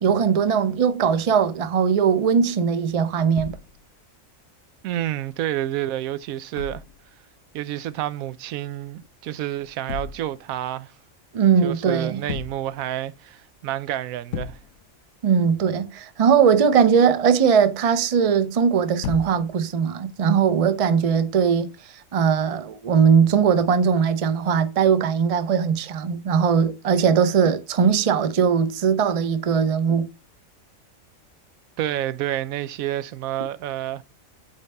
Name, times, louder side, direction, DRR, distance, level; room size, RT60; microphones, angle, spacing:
voice 1, 0.0-3.6 11.3-12.2 15.2-21.7 22.1-30.1, right 7 dB, 40° right, 0.5 m, -20 dB
sound 1, 3.4-4.0 6.6-7.2 9.6-10.5 12.2-12.9 13.3-13.4 13.8-13.9 14.3-15.0 19.0-19.7 20.8-21.0, left 8 dB, 75° left, 1.1 m, -35 dB
voice 2, 4.8-6.8 7.5-10.9 11.6-14.6 31.8-34.0, right 13 dB, 90° right, 1.0 m, -29 dB
8.6 x 4.2 x 3.4 m
omnidirectional pair, 1.4 m